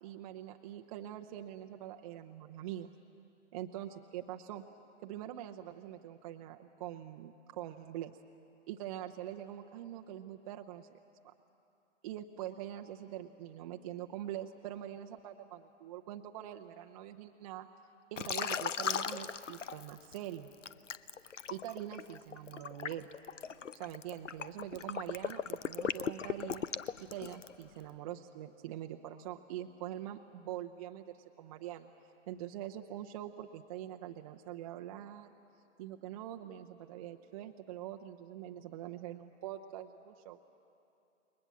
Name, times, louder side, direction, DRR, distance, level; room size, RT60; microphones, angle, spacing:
voice 1, 0.0-2.9 3.5-4.6 5.0-8.2 8.7-11.0 11.2-11.3 12.0-17.7 18.1-20.5 21.5-23.1 23.8-26.6 27.0-31.9 32.3-35.3 35.8-40.4, right 12 dB, 30° right, 4 dB, 0.8 m, -44 dB
Liquid, 18.2-20.2 20.6-27.6, left 7 dB, 75° left, 0.8 m, -37 dB
28.5 x 21.5 x 7.4 m, 2.6 s
figure-of-eight pair, 125°, 37 cm